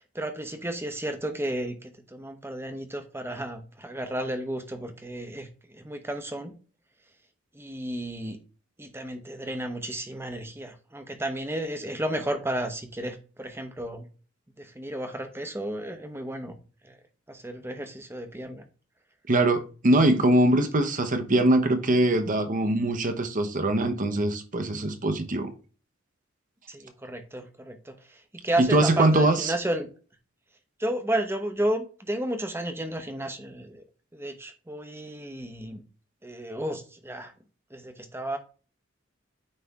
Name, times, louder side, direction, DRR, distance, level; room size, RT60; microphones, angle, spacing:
voice 1, 0.0-6.5 7.5-8.4 8.8-14.1 14.6-16.5 16.8-16.9 17.3-18.6 26.7-28.0 28.3-29.9 30.8-33.8 34.1-35.8 36.2-37.3 37.7-38.4, right 1 dB, 10° right, 0.9 m, -32 dB
voice 2, 19.3-25.5 28.6-29.5, right 1 dB, 40° right, 0.9 m, -22 dB
9.5 x 3.3 x 3.5 m
head